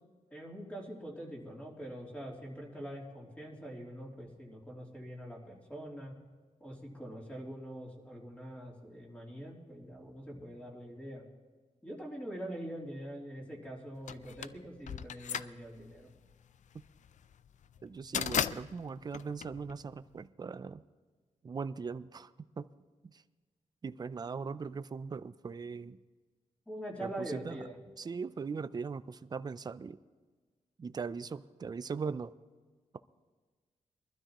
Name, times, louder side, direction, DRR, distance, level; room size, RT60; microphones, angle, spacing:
voice 1, 0.3-6.1 6.6-11.3 11.8-16.1 26.7-27.8, right 1 dB, 10° left, -3 dB, 3.1 m, -44 dB
sound 1, 14.1-20.2, left 8 dB, 65° left, 0.4 m, -37 dB
voice 2, 17.8-20.8 21.4-22.3 22.6-22.7 23.0-23.2 23.8-26.0 27.0-27.7 28.0-30.0 30.8-32.3, right 5 dB, 30° right, 13 dB, 0.4 m, -40 dB
23.0 x 12.5 x 3.0 m, 1.4 s
wide cardioid pair, 135°, 13 cm